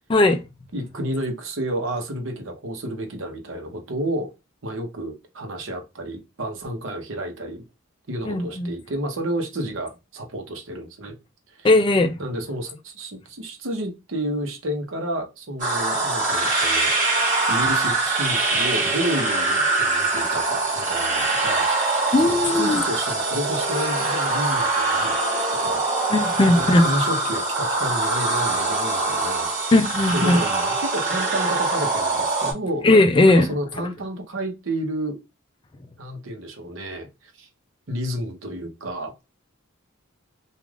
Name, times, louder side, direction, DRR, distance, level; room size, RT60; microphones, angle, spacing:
voice 1, 0.7-4.3 4.6-7.6 8.1-11.1 11.6-11.7 12.2-16.9 17.5-21.7 22.2-25.8 26.4-29.5 30.1-32.9 33.2-35.2 36.0-37.5 37.9-39.1, right 1 dB, 70° right, 0.8 m, -30 dB
voice 2, 8.3-8.7 11.6-12.2 22.1-22.8 26.1-26.9 29.7-30.4 32.8-33.5, left 2 dB, 25° left, 0.3 m, -17 dB
sound 1, 15.6-32.5, right 2 dB, 40° right, 1.4 m, -23 dB
3.3 x 2.4 x 2.3 m
head